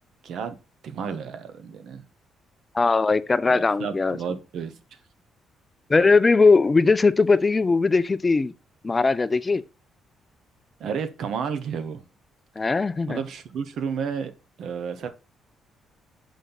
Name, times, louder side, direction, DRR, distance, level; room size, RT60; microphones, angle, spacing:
voice 1, 0.2-0.6 0.8-2.0 3.5-4.8 10.8-12.0 13.1-14.3 14.6-15.1, right 6 dB, 70° right, 1.0 m, -31 dB
voice 2, 2.7-4.2 5.9-8.5 8.8-9.6 12.6-13.2, left 4 dB, 25° left, 0.4 m, -19 dB
6.1 x 5.1 x 4.0 m
cardioid pair, 90°, 0 cm